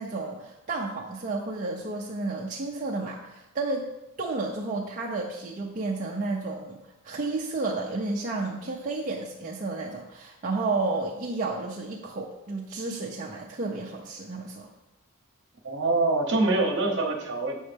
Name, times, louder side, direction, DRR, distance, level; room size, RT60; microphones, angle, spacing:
voice 1, 0.0-3.9 4.2-6.8 7.0-14.7, right 3 dB, 35° right, -3 dB, 0.6 m, -31 dB
voice 2, 15.6-17.6, right 2 dB, 55° right, 2 dB, 1.0 m, -24 dB
7.1 x 5.5 x 3.4 m, 0.94 s
head